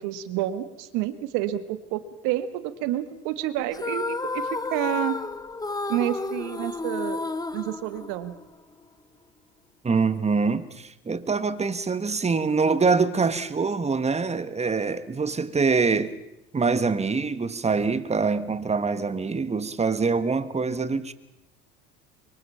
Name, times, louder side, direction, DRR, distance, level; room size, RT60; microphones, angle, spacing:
voice 1, 0.0-5.1 5.9-7.2 7.5-8.3, right 13 dB, 75° right, 1.8 m, -29 dB
sound 1, 3.7-8.5, left 3 dB, 10° left, 1.0 m, -31 dB
voice 2, 9.8-16.1 16.5-21.1, right 4 dB, 20° right, 1.5 m, -24 dB
24.5 x 23.0 x 5.8 m
supercardioid pair, 90°, 33 cm